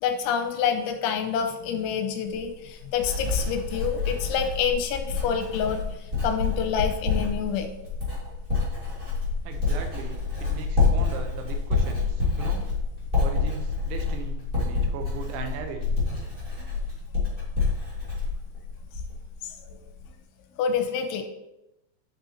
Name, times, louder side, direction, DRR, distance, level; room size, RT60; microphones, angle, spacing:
voice 1, 0.0-7.7 19.4-19.8 20.6-21.2, left 7 dB, 90° left, 6 dB, 3.1 m, -27 dB
Writing, 2.3-19.3 19.6-20.1, left 4 dB, 20° right, 1.6 m, -28 dB
voice 2, 9.4-12.7 13.2-15.9, right 6 dB, 80° right, 5 dB, 3.2 m, -38 dB
9.4 x 5.6 x 4.4 m, 0.92 s
omnidirectional pair, 5.5 m